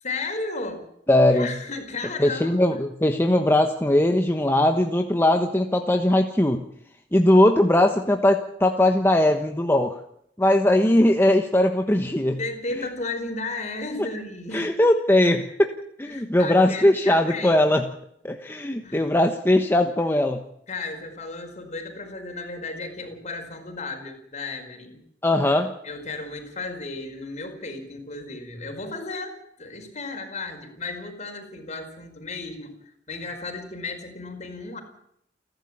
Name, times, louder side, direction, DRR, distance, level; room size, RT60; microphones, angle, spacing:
voice 1, 0.0-0.8 1.3-2.8 12.4-14.7 16.1-17.6 18.8-19.1 20.7-25.0 25.8-32.8 33.1-34.8, left 3 dB, 45° left, 6 dB, 5.0 m, -34 dB
voice 2, 1.1-1.5 2.2-6.6 7.1-10.0 10.4-12.4 12.8-12.9 14.5-15.7 16.0-17.8 18.2-20.4 25.2-25.7, left 1 dB, 15° left, 4 dB, 1.2 m, -20 dB
30.0 x 12.0 x 8.7 m, 0.73 s
head